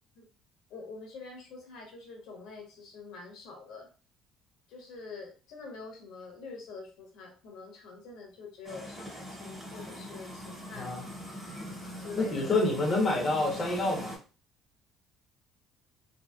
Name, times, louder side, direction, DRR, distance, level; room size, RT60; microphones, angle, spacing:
voice 1, 0.7-3.9 4.7-10.9 12.0-12.7, left 4 dB, 65° left, 2 dB, 0.9 m, -46 dB
sound 1, 8.6-14.2, equal, 10° right, 1.3 m, -42 dB
voice 2, 10.7-11.1 12.2-14.1, left 2 dB, 25° left, -1 dB, 0.8 m, -27 dB
2.8 x 2.8 x 2.2 m, 0.36 s
cardioid pair, 165°, 0 cm